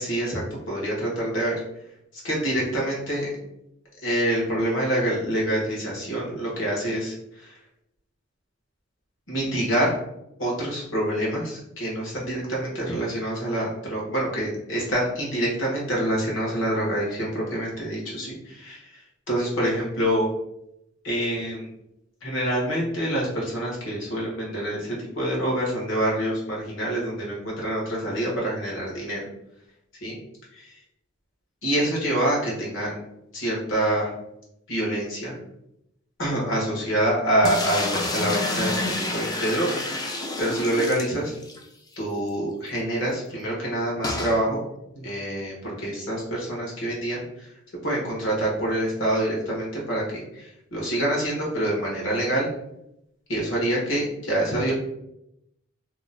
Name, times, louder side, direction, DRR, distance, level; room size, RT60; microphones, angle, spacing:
voice 1, 0.0-1.6 2.1-3.3 4.0-7.6 9.3-10.0 10.4-20.3 21.0-21.7 22.2-29.2 30.0-30.2 30.5-30.8 31.6-33.0 33.3-34.1 34.7-35.4 36.2-41.3 42.0-44.6 44.9-47.5 47.8-52.5 53.3-54.7, right 1 dB, 65° left, -3 dB, 1.3 m, -26 dB
sound 1, 37.4-41.6 42.0-42.1 42.3-42.4 44.0-44.4, left 2 dB, 20° left, 0.3 m, -28 dB
3.0 x 2.1 x 3.8 m, 0.81 s
head